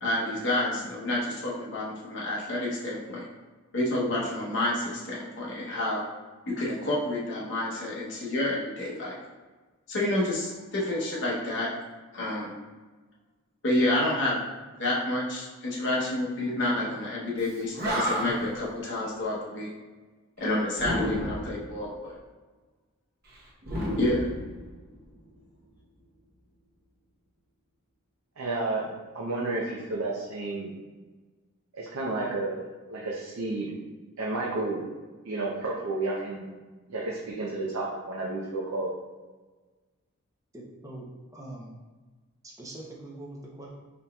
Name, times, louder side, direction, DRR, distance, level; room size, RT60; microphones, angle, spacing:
voice 1, 0.0-3.3 3.7-6.1 6.5-9.2 9.9-11.7 12.1-12.6 13.6-14.4 14.8-19.7 20.4-22.2 24.0-24.3, left 1 dB, 55° left, -5 dB, 0.8 m, -29 dB
Animal, 17.4-17.5 17.8-18.6 20.8-21.6 23.6-25.0, equal, 45° right, 0.9 m, -30 dB
voice 2, 28.4-30.7 31.7-32.6 32.9-33.7 34.2-34.8 35.2-36.4 36.9-38.9, right 2 dB, 85° right, -4 dB, 0.6 m, -31 dB
voice 3, 40.5-41.1 41.3-41.8 42.4-43.7, right 1 dB, 15° right, -3 dB, 0.6 m, -43 dB
4.1 x 3.9 x 2.2 m, 1.3 s
head